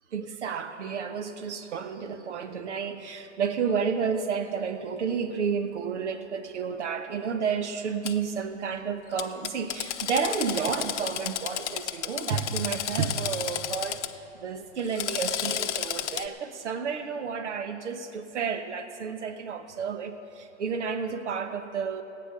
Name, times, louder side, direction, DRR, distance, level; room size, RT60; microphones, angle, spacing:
voice 1, 0.1-14.0 14.4-22.0, right 6 dB, 70° right, 8 dB, 1.1 m, -31 dB
Drill, 8.0-8.1 9.2-14.1 14.8-16.3, left 10 dB, 70° left, 0.7 m, -32 dB
15.0 x 9.0 x 6.6 m, 2.8 s
hypercardioid pair, 140°, 36 cm